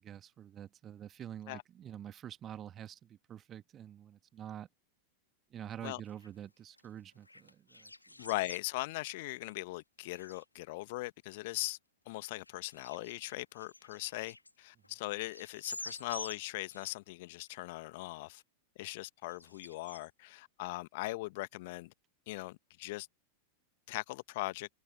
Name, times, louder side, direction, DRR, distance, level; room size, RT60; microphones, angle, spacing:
voice 1, 0.0-4.7 5.5-8.2, right 10 dB, 25° right, 1.5 m, -47 dB
sound 1, 5.7-5.8 6.1-6.5 6.7-8.7 9.0-9.8 10.1-10.5 11.0-11.1 11.6-11.7 12.2-14.9 15.2-17.0 17.5-17.6 18.4-18.5 19.3-20.1, left 2 dB, 85° left, 2.1 m, -49 dB
voice 2, 8.2-11.8 12.1-18.4 18.8-21.9 22.3-23.1 23.9-24.7, left 21 dB, 50° left, 1.4 m, -40 dB
figure-of-eight pair, 90°, 0 cm